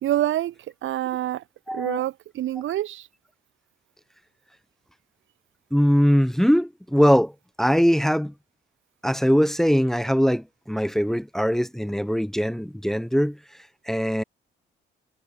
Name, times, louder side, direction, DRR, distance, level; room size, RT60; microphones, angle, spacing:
voice 1, 0.0-0.5 0.8-1.4 1.7-3.1, right 13 dB, 80° right, 2.6 m, -26 dB
voice 2, 1.7-2.0 5.7-7.3 7.6-8.3 9.0-13.4 13.9-14.2, equal, ahead, 1.3 m, -21 dB
cardioid pair, 90°, 20 cm